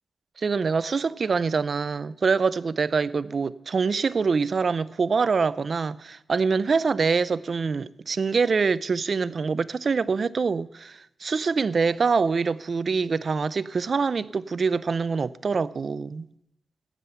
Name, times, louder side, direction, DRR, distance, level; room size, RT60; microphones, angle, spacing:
voice 1, 0.4-16.3, right 5 dB, 60° right, 0.5 m, -25 dB
15.0 x 9.6 x 5.6 m
cardioid pair, 45°, 0 cm